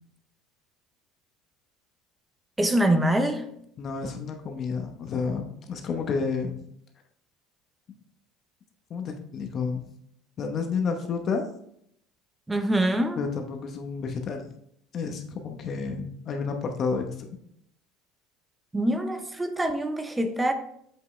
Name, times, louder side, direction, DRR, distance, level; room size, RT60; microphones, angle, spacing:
voice 1, 2.6-3.5 12.5-13.2 18.7-20.5, right 1 dB, 10° right, 0.7 m, -24 dB
voice 2, 3.8-6.6 8.9-9.9 10.4-11.5 13.2-14.5 14.9-17.0, left 5 dB, 35° left, 0.9 m, -30 dB
7.6 x 5.5 x 3.2 m
cardioid pair, 140°, 0 cm